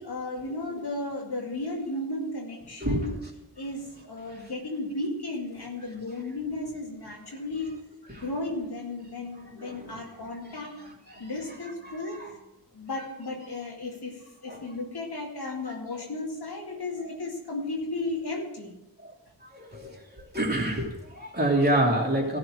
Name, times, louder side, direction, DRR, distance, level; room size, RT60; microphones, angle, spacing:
voice 1, 0.0-3.2 3.6-7.8 8.1-10.8 11.2-12.2 12.7-18.7, left 2 dB, 85° left, -1 dB, 2.3 m, -34 dB
voice 2, 9.6-10.0 11.2-11.3 12.0-12.1 14.5-14.6 15.7-15.8 19.0-19.1 19.5-19.9 20.2-22.4, right 1 dB, 25° right, -2 dB, 3.0 m, -27 dB
13.5 x 4.8 x 7.5 m, 0.95 s
cardioid pair, 50°, 38 cm